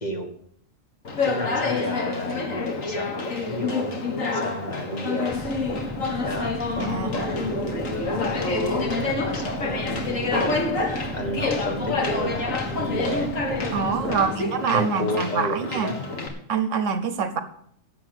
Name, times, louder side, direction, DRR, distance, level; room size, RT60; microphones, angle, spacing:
Conversation, 1.0-16.3, left 3 dB, 85° left, 2.1 m, -28 dB
voice 1, 1.2-3.9 4.3-5.4 6.2-6.5 7.1-10.9 11.1-13.3 14.1-14.4 14.7-16.0, equal, 35° left, 3 dB, 1.7 m, -32 dB
sound 1, 5.3-14.3, right 1 dB, 10° right, 0.6 m, -35 dB
voice 2, 6.8-7.1 13.7-15.9 16.5-17.4, right 6 dB, 70° right, 11 dB, 1.3 m, -25 dB
11.5 x 7.2 x 8.0 m, 0.67 s
omnidirectional pair, 1.3 m